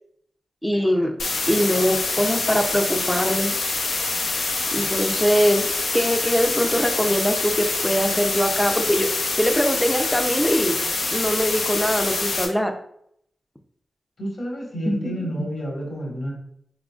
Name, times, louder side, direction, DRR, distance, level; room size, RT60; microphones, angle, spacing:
voice 1, 0.6-1.2 1.5-3.5 4.7-9.1 9.4-10.8 11.1-12.7 14.9-15.3, equal, 5° left, 5 dB, 0.6 m, -22 dB
sound 1, 1.2-12.4, left 3 dB, 80° left, 0.8 m, -25 dB
voice 2, 14.2-16.3, equal, 65° left, -2 dB, 1.6 m, -30 dB
3.9 x 3.8 x 2.4 m, 0.71 s
cardioid pair, 50°, 0 cm